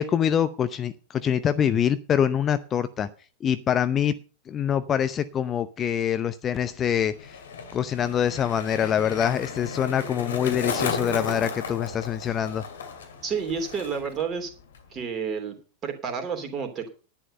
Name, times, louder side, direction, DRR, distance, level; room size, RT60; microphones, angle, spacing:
voice 1, 0.0-3.1 3.4-4.2 4.5-7.4 7.7-12.7, left 9 dB, 25° left, 12 dB, 0.7 m, -25 dB
Skateboard, 6.7-14.2 14.5-15.0, left 5 dB, 65° left, 2.4 m, -34 dB
voice 2, 13.2-14.5 14.9-15.6 15.8-16.9, right 6 dB, 25° right, 5 dB, 3.1 m, -30 dB
11.0 x 10.0 x 5.4 m, 0.36 s
figure-of-eight pair, 90°, 0 cm